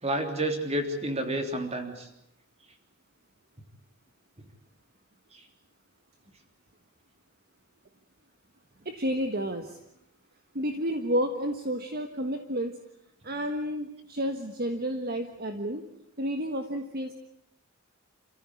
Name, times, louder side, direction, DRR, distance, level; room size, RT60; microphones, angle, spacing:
voice 1, 0.0-2.1 5.3-5.4, right 1 dB, 30° right, 5 dB, 3.4 m, -30 dB
voice 2, 8.8-9.8 10.5-12.7 13.2-15.8 16.2-17.1, equal, 45° right, 6 dB, 1.6 m, -31 dB
28.0 x 15.0 x 9.8 m, 0.83 s
head